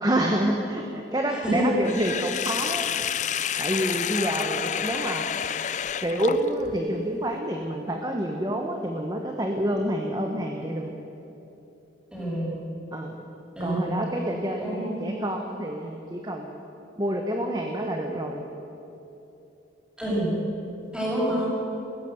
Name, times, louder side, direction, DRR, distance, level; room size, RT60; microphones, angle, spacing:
voice 1, 0.0-2.9 3.6-5.2 6.0-10.9 12.9-13.1 13.6-16.6 17.0-18.4 21.3-21.4, right 1 dB, 20° right, 2 dB, 1.2 m, -28 dB
voice 2, 1.3-1.7 12.1-12.6 13.6-14.0 14.6-15.1 20.0-20.3 20.9-21.5, right 1 dB, 5° right, -5 dB, 6.1 m, -28 dB
Sink (filling or washing), 1.8-6.8, left 9 dB, 40° left, 0.5 m, -29 dB
20.5 x 17.0 x 8.0 m, 3.0 s
head